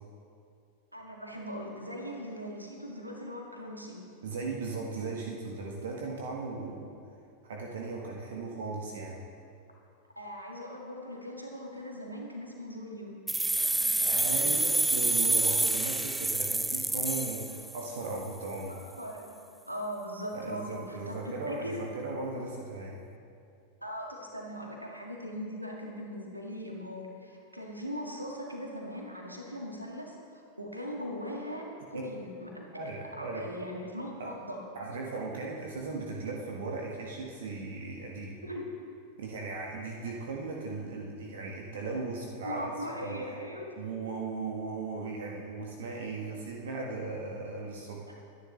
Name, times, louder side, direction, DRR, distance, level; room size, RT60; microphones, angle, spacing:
voice 1, 0.9-4.0 10.2-13.2 13.6-14.6 18.7-19.3 19.7-21.8 23.8-32.9 33.2-34.6 38.4-38.6 42.4-43.7, equal, 85° right, 0 dB, 1.9 m, -40 dB
voice 2, 4.2-6.9 7.4-9.2 14.0-18.8 20.3-23.0 31.9-32.1 32.7-33.4 34.2-34.3 34.7-38.4 39.2-42.7 43.1-43.2 43.8-48.2, right 3 dB, 60° right, 0 dB, 1.5 m, -37 dB
sound 1, 13.3-18.1, right 2 dB, 5° right, 0.5 m, -28 dB
22.5 x 10.5 x 3.3 m, 2.4 s
figure-of-eight pair, 90°, 0 cm